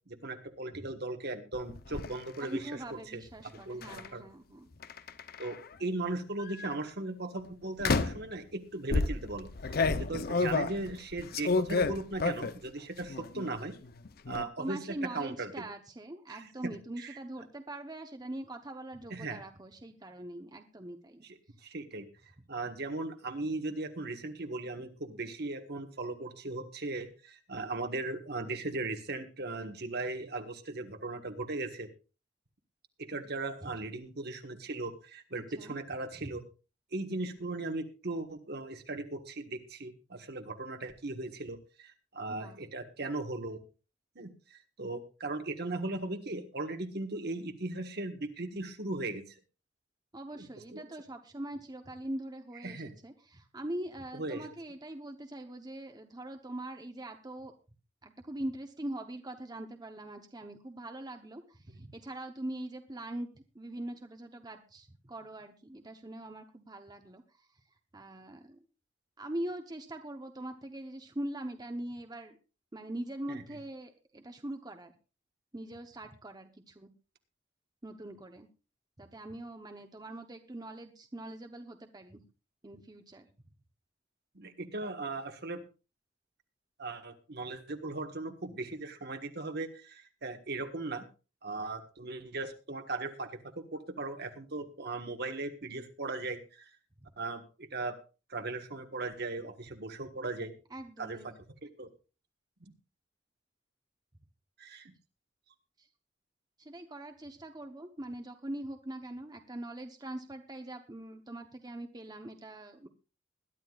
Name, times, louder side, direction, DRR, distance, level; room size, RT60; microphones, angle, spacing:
voice 1, 0.1-2.6 3.1-3.2 3.6-4.2 5.4-13.7 14.3-15.7 16.3-17.2 19.1-19.4 21.6-22.1 22.5-31.9 33.0-36.4 36.9-43.6 44.1-49.4 50.3-50.5 50.7-50.8 52.6-53.0 54.1-54.4 73.3-73.4 84.3-85.6 86.8-91.0 91.4-96.7 97.2-98.0 98.3-100.5 101.0-101.3 101.6-101.9 104.6-104.9, right 2 dB, 60° right, 6 dB, 1.5 m, -38 dB
sound 1, 1.5-2.1 3.8-4.1 4.8-5.7 6.4-6.7 7.8-8.3 8.9-12.7 13.0-13.6 13.8-14.4, left 3 dB, 55° left, 0.7 m, -31 dB
voice 2, 2.4-4.7 14.6-21.2 33.6-33.7 35.3-35.8 36.1-36.4 42.3-42.6 50.1-57.5 58.0-63.3 63.5-67.2 67.9-68.6 69.2-72.4 72.7-74.9 75.5-76.9 77.8-78.5 79.0-82.2 82.6-83.3 100.7-101.3 105.8-105.9 106.6-112.9, right 1 dB, 20° right, 5 dB, 1.0 m, -42 dB
21.0 x 11.5 x 2.5 m, 0.32 s
head